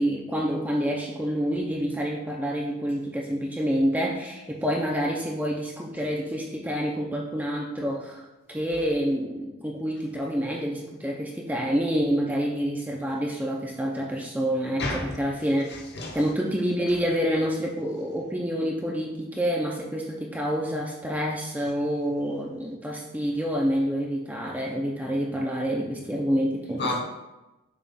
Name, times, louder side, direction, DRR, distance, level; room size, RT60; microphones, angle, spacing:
voice 1, 0.0-8.2 8.5-15.7 16.1-26.9, equal, 5° right, 0.5 m, -27 dB
voice 2, 14.8-15.2 15.7-16.3 26.8-27.0, left 2 dB, 50° left, 0.9 m, -30 dB
7.2 x 2.4 x 5.5 m
head